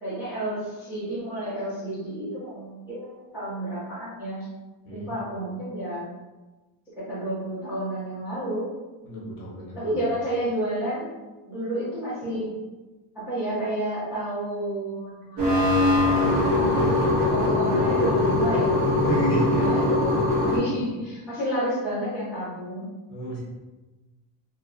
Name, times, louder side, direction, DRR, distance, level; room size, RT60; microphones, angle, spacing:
voice 1, 0.0-4.4 4.9-6.1 7.0-8.7 9.8-11.1 11.5-12.5 13.1-15.8 16.1-16.4 17.3-20.2 20.5-22.9, right 1 dB, 5° right, -13 dB, 0.4 m, -30 dB
voice 2, 9.1-10.0 19.0-19.7 23.1-23.4, left 1 dB, 45° left, -4 dB, 0.8 m, -31 dB
sound 1, 15.4-20.6, left 2 dB, 60° right, 1.1 m, -21 dB
2.7 x 2.0 x 2.5 m, 1.2 s
cardioid pair, 165°, 47 cm